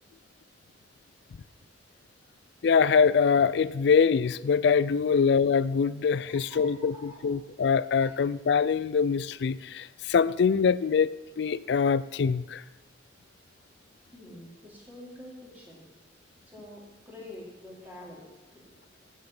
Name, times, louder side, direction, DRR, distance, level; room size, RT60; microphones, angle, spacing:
voice 1, 2.6-12.6, left 6 dB, 65° left, 18 dB, 0.4 m, -24 dB
voice 2, 6.3-7.4 8.0-8.1 14.1-15.8 16.5-18.3 18.5-18.7, left 1 dB, 10° right, -4 dB, 2.7 m, -47 dB
10.0 x 5.6 x 8.4 m, 1.1 s
head